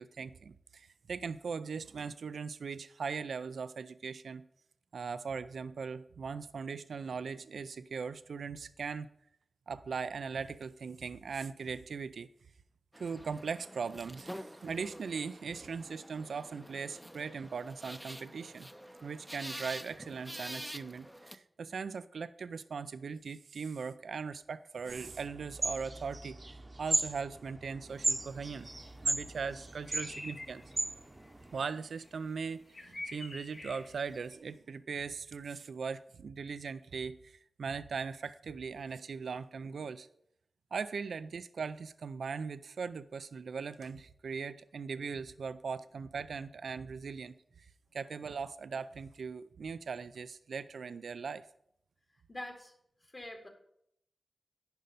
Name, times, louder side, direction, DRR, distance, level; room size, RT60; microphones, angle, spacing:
voice 1, 0.0-4.5 4.9-9.1 9.7-12.3 13.0-18.7 19.0-26.4 26.8-28.7 29.0-30.6 31.5-40.1 40.7-47.7 47.9-51.5, right 5 dB, 85° right, 14 dB, 0.3 m, -39 dB
sound 1, 12.9-21.4, equal, 5° right, 0.6 m, -47 dB
sound 2, 24.9-31.6, right 2 dB, 35° right, 0.8 m, -36 dB
sound 3, 27.9-34.4, left 2 dB, 55° left, 1.6 m, -50 dB
voice 2, 52.1-52.7 53.0-53.5, left 1 dB, 40° left, 0 dB, 2.2 m, -45 dB
10.5 x 5.4 x 5.2 m, 0.73 s
cardioid pair, 40°, 0 cm